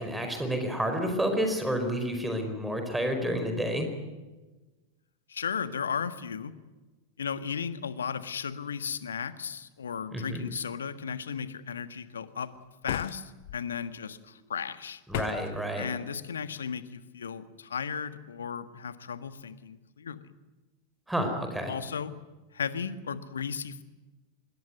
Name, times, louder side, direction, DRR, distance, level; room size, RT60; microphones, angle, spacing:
voice 1, 0.0-3.9 10.1-10.4 15.1-15.9 21.1-21.7, equal, 5° right, 5 dB, 4.7 m, -30 dB
voice 2, 5.3-6.5 7.2-12.5 12.8-15.0 15.8-20.2 21.7-22.1 22.5-23.8, left 7 dB, 70° left, 12 dB, 1.6 m, -35 dB
sound 1, 12.8-13.6 15.1-15.6, left 15 dB, 50° left, 0.8 m, -35 dB
25.5 x 22.0 x 9.4 m, 1.2 s
figure-of-eight pair, 90°, 0 cm